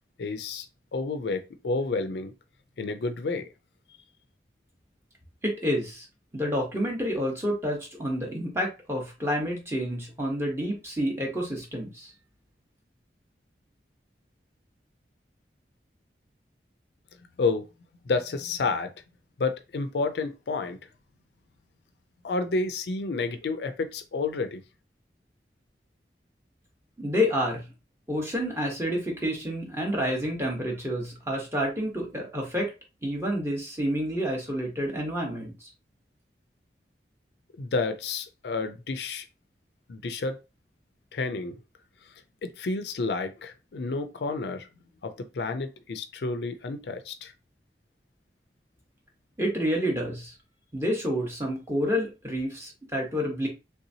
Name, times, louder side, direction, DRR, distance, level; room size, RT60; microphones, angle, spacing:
voice 1, 0.2-0.7 0.9-2.3 2.8-3.5 17.4-17.7 18.1-18.9 19.4-20.8 22.2-24.6 37.6-39.3 39.9-40.4 41.1-41.6 42.4-44.7 45.0-47.3, left 3 dB, 75° left, 0.4 m, -30 dB
voice 2, 5.4-6.0 6.3-12.1 27.0-27.7 28.1-32.7 33.0-35.7 49.4-50.3 50.7-53.5, equal, 15° right, 1.0 m, -29 dB
3.4 x 2.8 x 2.7 m
head